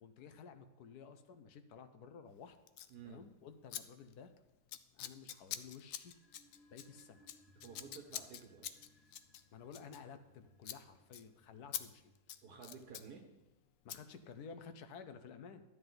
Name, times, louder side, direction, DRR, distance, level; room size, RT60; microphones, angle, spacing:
voice 1, 0.0-2.6 3.0-4.3 4.9-6.2 6.7-7.3 9.5-12.1 13.8-15.6, left 6 dB, 65° left, 9 dB, 1.1 m, -53 dB
Scissors, 2.7-2.9 3.7-3.8 4.1-4.3 4.7-10.4 10.6-10.8 11.1-11.2 11.7-11.8 12.2-13.1 13.9-14.0, left 11 dB, 85° left, 0.7 m, -46 dB
voice 2, 2.9-3.2 7.5-8.8 12.4-13.3, right 6 dB, 60° right, 2 dB, 1.5 m, -53 dB
sound 1, 6.0-12.8, right 1 dB, 25° left, 1.2 m, -69 dB
12.5 x 9.6 x 3.9 m, 1.0 s
omnidirectional pair, 1.9 m